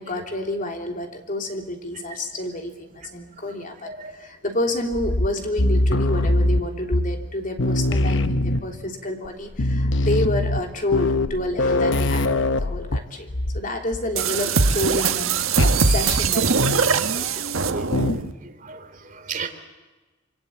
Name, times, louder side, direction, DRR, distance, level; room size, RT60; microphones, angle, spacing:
voice 1, 0.0-13.3 13.5-17.4, left 1 dB, 40° left, 3 dB, 3.3 m, -29 dB
sound 1, 4.9-7.3 7.6-8.9 9.3-9.4 9.5-13.7 13.9-14.2 15.6-15.8 16.6-17.0 17.9-18.3, left 1 dB, 60° left, 0.9 m, -23 dB
sound 2, 14.2-18.3, right 4 dB, 90° right, 1.4 m, -21 dB
voice 2, 18.4-19.5, right 5 dB, 40° right, 4 dB, 3.1 m, -34 dB
26.0 x 25.0 x 8.8 m, 1.2 s
head